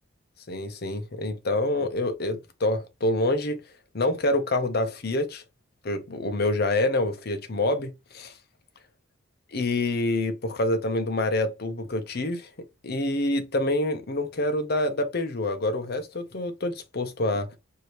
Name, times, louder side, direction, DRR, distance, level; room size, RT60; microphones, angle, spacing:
voice 1, 0.5-3.6 3.9-5.4 5.8-8.3 9.5-12.5 12.8-17.5, left 2 dB, 50° left, 0.7 m, -27 dB
4.6 x 2.8 x 3.0 m
head